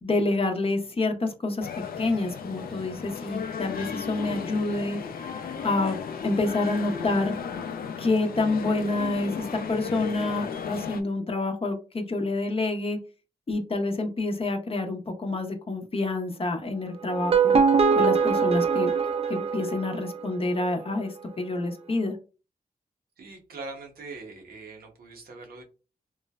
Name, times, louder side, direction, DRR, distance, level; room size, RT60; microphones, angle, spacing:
voice 1, 0.0-1.7 2.0-5.0 5.6-6.0 6.2-7.3 8.0-13.0 13.5-17.6 18.0-18.9 19.3-22.2, left 2 dB, 40° left, 0.6 m, -28 dB
sound 1, 1.6-11.0, left 7 dB, 85° left, 0.4 m, -35 dB
sound 2, 17.1-20.2, right 5 dB, 40° right, 0.4 m, -22 dB
voice 2, 23.2-25.6, right 3 dB, 90° right, 0.8 m, -42 dB
3.0 x 2.0 x 2.2 m
cardioid pair, 55°, 15 cm